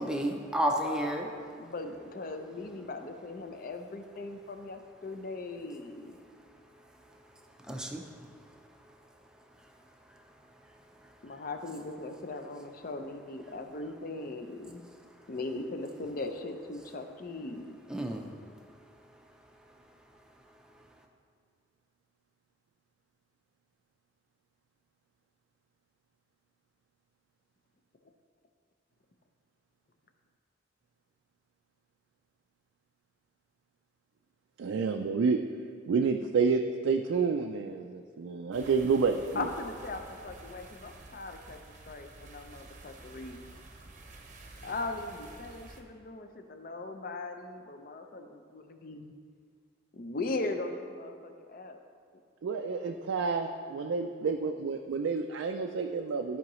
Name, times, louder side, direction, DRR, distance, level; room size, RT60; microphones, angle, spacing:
voice 1, 0.0-1.3 7.6-8.6 9.6-9.7 10.1-10.2 11.0-11.1 17.9-18.4, right 1 dB, 5° right, 2 dB, 0.5 m, -32 dB
voice 2, 0.8-6.2 11.2-14.8 15.3-17.8 39.4-41.6 41.9-43.4 44.6-49.1 49.9-51.8 52.8-53.0, left 2 dB, 50° left, 6 dB, 0.5 m, -39 dB
voice 3, 34.6-35.4 35.9-39.4 52.4-56.4, right 5 dB, 85° right, 4 dB, 0.4 m, -29 dB
sound 1, 38.5-45.8, right 2 dB, 40° right, 0.7 m, -50 dB
12.5 x 4.7 x 3.1 m, 2.1 s
head